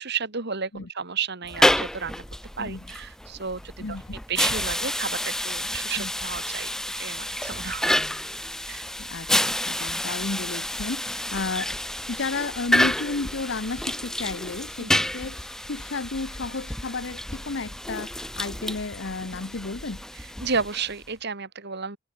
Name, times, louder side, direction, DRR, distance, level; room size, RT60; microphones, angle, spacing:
voice 1, 0.0-2.2 2.6-4.0 4.3-6.7 7.0-8.0 8.7-8.8 14.8-14.9 20.4-22.0, right 5 dB, 55° right, 2.2 m, -32 dB
sound 1, 1.4-21.1, left 1 dB, ahead, 0.4 m, -29 dB
voice 2, 3.8-4.2 6.0-6.1 9.0-11.8 12.1-20.0, left 3 dB, 60° left, 1.0 m, -32 dB
head